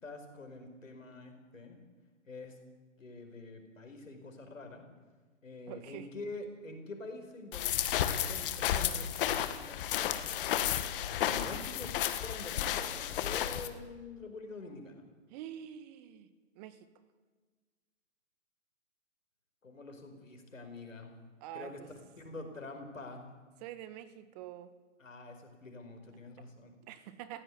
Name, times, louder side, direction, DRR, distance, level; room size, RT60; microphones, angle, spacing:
voice 1, 0.0-1.8 2.3-2.6 3.0-4.8 5.4-10.4 11.2-11.9 12.2-15.1 19.6-21.1 21.5-21.8 22.2-23.3 25.0-26.7, left 3 dB, 85° left, 5 dB, 5.1 m, -46 dB
voice 2, 5.7-6.1 11.3-11.9 15.3-16.9 21.4-21.9 23.6-24.7 26.8-27.4, right 11 dB, 30° right, 12 dB, 1.6 m, -46 dB
sound 1, 7.5-13.7, left 11 dB, 45° left, 1.7 m, -32 dB
19.5 x 16.0 x 9.6 m, 1.4 s
hypercardioid pair, 130°, 38 cm